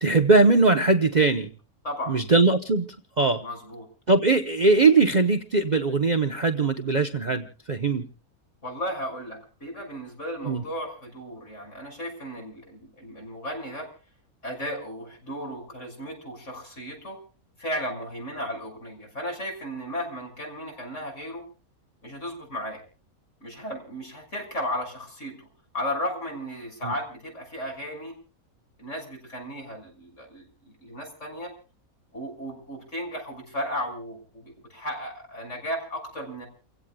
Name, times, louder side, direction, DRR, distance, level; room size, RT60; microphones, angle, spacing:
voice 1, 0.0-1.5 2.1-2.9 3.2-3.4 4.1-8.1 10.4-10.6 26.8-26.9, right 3 dB, 35° right, 5 dB, 0.9 m, -20 dB
voice 2, 1.8-2.2 3.4-3.9 8.6-13.9 14.4-17.2 17.6-21.4 22.0-22.8 23.4-25.5 25.7-28.1 28.8-31.5 32.1-36.5, equal, 55° left, 1 dB, 6.8 m, -35 dB
29.5 x 16.5 x 2.3 m, 0.38 s
omnidirectional pair, 1.5 m